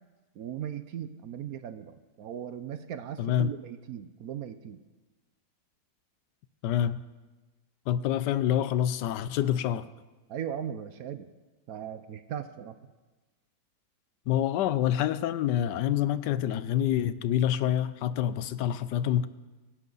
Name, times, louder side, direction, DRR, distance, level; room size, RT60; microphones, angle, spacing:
voice 1, 0.4-4.8 10.3-11.3 11.7-12.8, right 9 dB, 65° right, 11 dB, 1.1 m, -38 dB
voice 2, 3.2-3.5 6.6-7.0 7.9-9.9 14.3-19.3, left 11 dB, 80° left, 15 dB, 1.2 m, -27 dB
25.0 x 11.0 x 4.0 m, 1.2 s
omnidirectional pair, 1.8 m